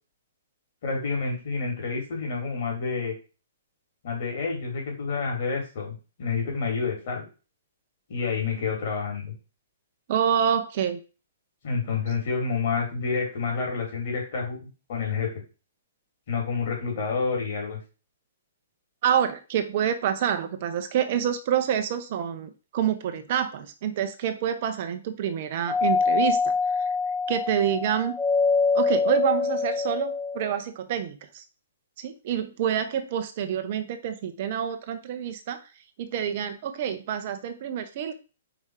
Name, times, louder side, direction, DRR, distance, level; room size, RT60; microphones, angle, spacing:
voice 1, 0.8-3.1 4.0-7.3 8.1-9.3 11.6-15.4 16.3-17.8, left 5 dB, 50° left, -1 dB, 3.3 m, -29 dB
voice 2, 10.1-11.0 19.0-26.9 27.3-28.1 28.7-31.4 32.0-35.6 36.0-38.1, right 9 dB, 45° right, 8 dB, 0.8 m, -27 dB
Doorbell, 25.7-30.5, left 4 dB, 10° left, 0.5 m, -24 dB
5.0 x 4.2 x 4.9 m, 0.33 s
figure-of-eight pair, 115°, 0 cm